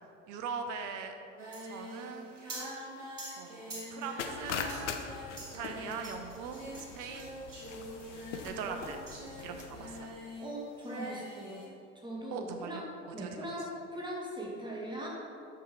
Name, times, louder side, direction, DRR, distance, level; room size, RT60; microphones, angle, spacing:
voice 1, 0.3-1.1 1.6-2.6 3.3-4.7 5.5-7.3 8.4-9.0 9.4-10.2 12.3-13.6, right 6 dB, 55° right, 5 dB, 1.1 m, -41 dB
Singing, 1.4-10.5 10.8-11.7, equal, 85° right, 2.0 m, -44 dB
sound 1, 4.2-10.0, left 6 dB, 80° left, 0.8 m, -42 dB
voice 2, 10.4-11.7 12.0-12.8 13.1-15.1, equal, 10° right, -3 dB, 2.0 m, -40 dB
9.3 x 6.7 x 4.1 m, 2.5 s
figure-of-eight pair, 65°, 36 cm